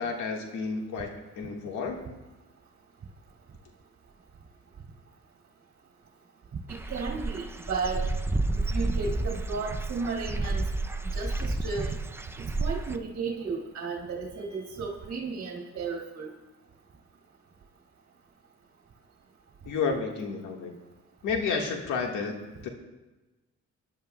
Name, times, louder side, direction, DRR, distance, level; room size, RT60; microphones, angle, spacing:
voice 1, 0.0-2.1 19.6-20.7 21.2-22.4 22.6-22.7, left 5 dB, 90° left, 2 dB, 1.7 m, -31 dB
Dog / Bird, 6.7-13.0, right 2 dB, 10° right, 0.5 m, -31 dB
voice 2, 6.7-8.1 8.5-10.7 11.1-11.9 12.4-16.3, right 4 dB, 50° right, -2 dB, 2.2 m, -34 dB
21.5 x 11.0 x 2.3 m, 1.1 s
cardioid pair, 90°, 30 cm